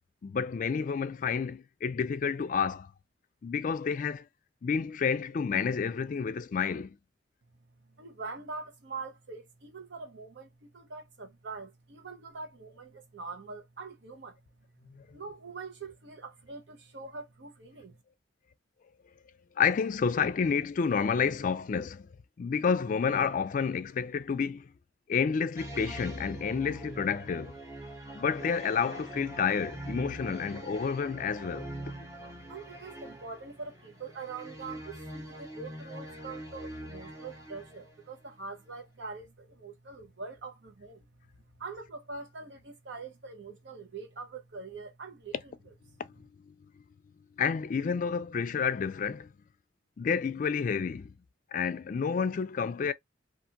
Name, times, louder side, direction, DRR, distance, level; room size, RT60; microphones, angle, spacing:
voice 1, 0.2-2.9 3.4-4.3 4.6-7.0 14.9-15.1 19.6-22.1 22.4-24.7 25.1-27.5 28.1-31.7 47.4-49.3 50.0-51.1 51.5-52.9, left 6 dB, 45° left, 0.3 m, -29 dB
voice 2, 8.0-14.4 15.1-18.0 32.1-41.1 41.6-45.5, right 4 dB, 80° right, 0.8 m, -43 dB
sound 1, 25.6-38.1, right 1 dB, 15° right, 0.7 m, -43 dB
2.8 x 2.5 x 2.4 m
head